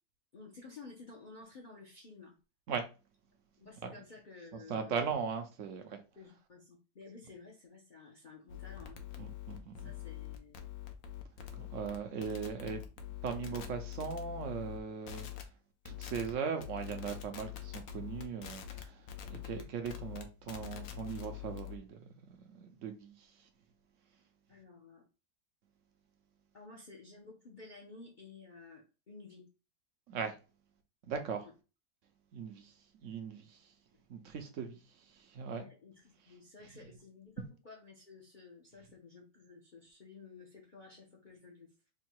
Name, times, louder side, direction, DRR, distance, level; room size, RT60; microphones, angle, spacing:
voice 1, 0.3-2.3 3.6-5.1 6.2-9.0 9.8-10.7 12.6-12.9 13.3-13.4 13.9-14.1 24.5-25.0 26.5-29.5 31.4-31.5 35.5-41.7, left 4 dB, 45° left, 0.6 m, -53 dB
voice 2, 4.7-6.0 9.2-9.9 11.5-12.8 13.2-15.3 15.8-22.1 22.5-23.3 30.1-30.4 31.0-31.5 32.3-32.7 33.0-33.7 34.1-35.6, right 6 dB, 65° right, 0.8 m, -39 dB
sound 1, 8.5-14.8 15.1-15.4 15.9-16.3 16.6-21.8, left 12 dB, 65° left, 1.0 m, -45 dB
3.6 x 2.3 x 4.3 m
omnidirectional pair, 1.7 m